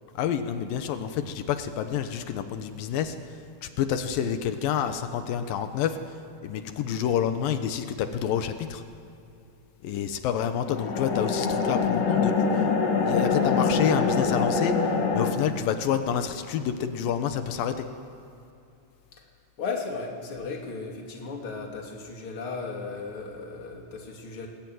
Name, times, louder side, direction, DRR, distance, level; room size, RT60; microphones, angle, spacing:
voice 1, 0.2-3.2 3.6-8.8 9.8-12.6 13.0-14.8 15.1-17.8, left 8 dB, 85° left, 8 dB, 2.8 m, -28 dB
sound 1, 10.7-15.3, left 5 dB, 70° left, 3.9 m, -24 dB
voice 2, 19.6-24.5, left 4 dB, 40° left, 0 dB, 3.5 m, -35 dB
22.0 x 20.5 x 9.5 m, 2.7 s
omnidirectional pair, 4.0 m